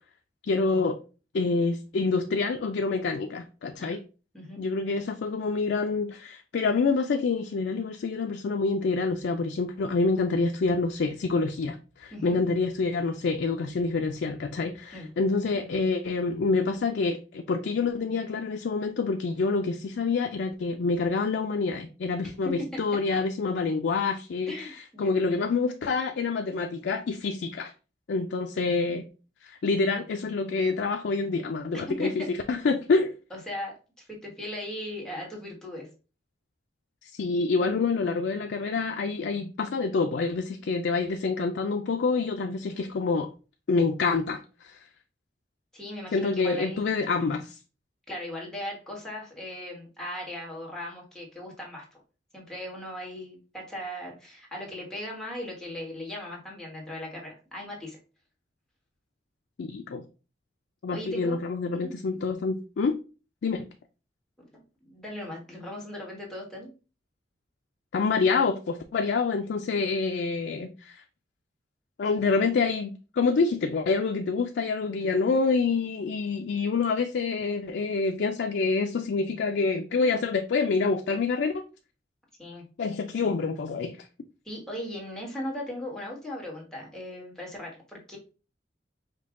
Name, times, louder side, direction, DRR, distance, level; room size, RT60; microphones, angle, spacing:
voice 1, 0.5-1.0 1.3-4.0 4.6-27.7 28.1-29.1 29.4-33.1 37.0-43.3 43.7-44.8 46.1-47.6 59.6-60.0 60.8-63.0 63.4-63.7 67.9-71.0 72.0-81.6 82.8-84.1, left 4 dB, 75° left, 0.4 m, -27 dB
voice 2, 22.4-22.8 24.5-25.1 31.7-32.1 33.3-35.9 42.6-42.8 45.7-46.9 48.1-51.9 52.3-58.0 60.9-61.4 61.7-61.9 64.8-66.7 82.4-82.6 84.4-88.2, left 1 dB, 5° left, 1.3 m, -38 dB
5.3 x 2.2 x 3.6 m
head